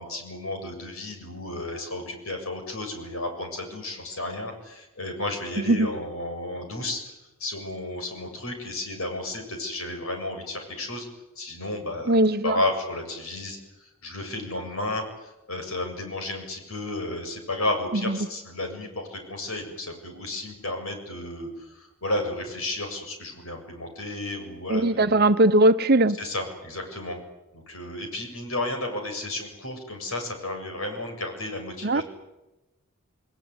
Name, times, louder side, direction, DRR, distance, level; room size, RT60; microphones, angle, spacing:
voice 1, 0.0-11.1 11.4-25.3 26.2-27.2 27.5-32.0, left 2 dB, 80° left, 4 dB, 7.3 m, -33 dB
voice 2, 5.6-5.9 12.1-12.6 17.9-18.2 24.7-26.2 31.8-32.0, right 1 dB, 45° right, 11 dB, 1.0 m, -20 dB
29.0 x 20.5 x 9.7 m, 1.0 s
head